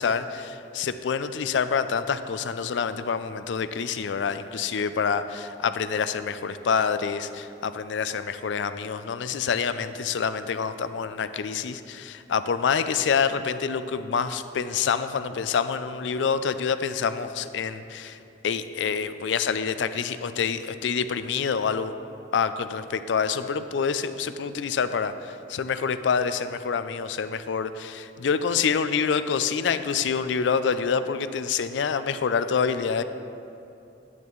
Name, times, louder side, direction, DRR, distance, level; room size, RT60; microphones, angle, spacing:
voice 1, 0.0-18.2 18.4-21.9 22.3-33.0, left 6 dB, 80° left, 11 dB, 0.4 m, -27 dB
9.8 x 9.5 x 3.1 m, 2.7 s
head